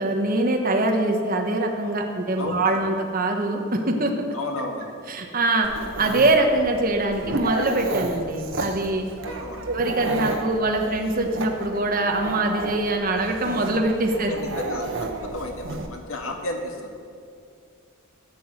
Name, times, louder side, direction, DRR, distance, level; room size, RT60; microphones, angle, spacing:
voice 1, 0.0-4.3 5.1-5.7 6.0-9.0 9.7-14.4, right 2 dB, 45° right, 2 dB, 1.2 m, -23 dB
voice 2, 2.4-2.8 4.3-4.9 9.2-9.7 14.1-16.9, left 1 dB, 85° left, 2 dB, 1.9 m, -33 dB
Dog, 5.6-15.9, right 2 dB, 65° right, 1.3 m, -32 dB
14.5 x 6.3 x 9.0 m, 2.3 s
head